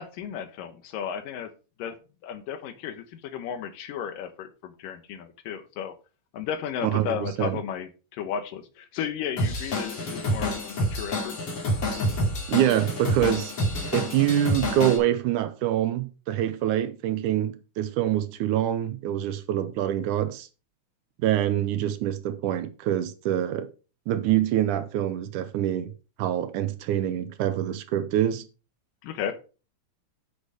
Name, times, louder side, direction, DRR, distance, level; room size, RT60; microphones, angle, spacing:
voice 1, 0.0-1.5 1.8-2.0 2.2-5.9 6.3-11.4 29.0-29.3, left 8 dB, 90° left, 2.8 m, -34 dB
voice 2, 6.8-7.6 12.5-13.5 13.9-20.5 21.2-23.7 24.1-25.9 26.2-28.5, right 11 dB, 80° right, 2.1 m, -25 dB
Drum kit / Drum, 9.4-15.0, equal, 45° left, 3.3 m, -28 dB
8.2 x 6.6 x 4.8 m
omnidirectional pair, 3.7 m